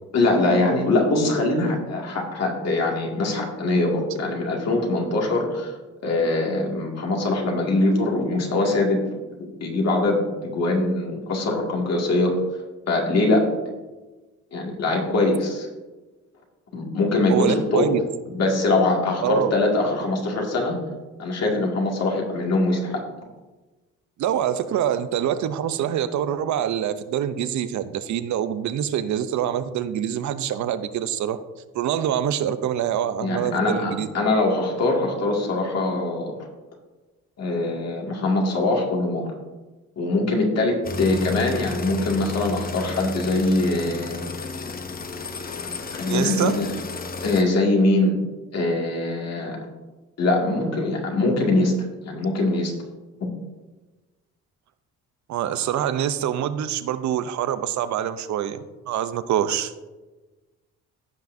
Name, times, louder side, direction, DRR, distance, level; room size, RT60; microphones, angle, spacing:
voice 1, 0.1-5.8 6.0-9.0 9.4-12.3 12.9-13.5 14.5-15.7 16.7-17.9 18.3-20.8 21.2-23.0 33.2-36.3 37.4-39.3 40.0-44.2 45.9-46.8 47.2-48.2 48.5-49.6 50.2-51.7 52.1-52.7 53.2-53.3, left 2 dB, 55° left, -1 dB, 2.2 m, -22 dB
voice 2, 17.3-18.0 19.2-19.5 24.2-31.4 31.7-34.1 46.1-46.6 55.3-59.7, right 10 dB, 70° right, 12 dB, 0.6 m, -25 dB
sound 1, 40.8-47.4, left 3 dB, 30° left, 0.8 m, -33 dB
15.5 x 5.7 x 2.7 m, 1.2 s
cardioid pair, 90°, 30 cm